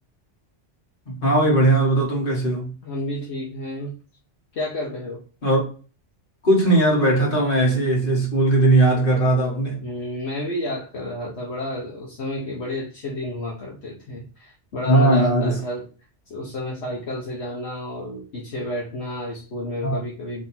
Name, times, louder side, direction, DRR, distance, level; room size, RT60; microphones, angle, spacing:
voice 1, 1.1-2.7 5.4-5.6 6.4-9.8 14.9-15.6 19.8-20.0, right 1 dB, 50° left, 1.8 m, -18 dB
voice 2, 2.8-3.9 4.5-5.2 9.8-15.9 16.3-20.4, left 1 dB, 65° left, 1.2 m, -31 dB
3.7 x 3.2 x 4.2 m
omnidirectional pair, 1.2 m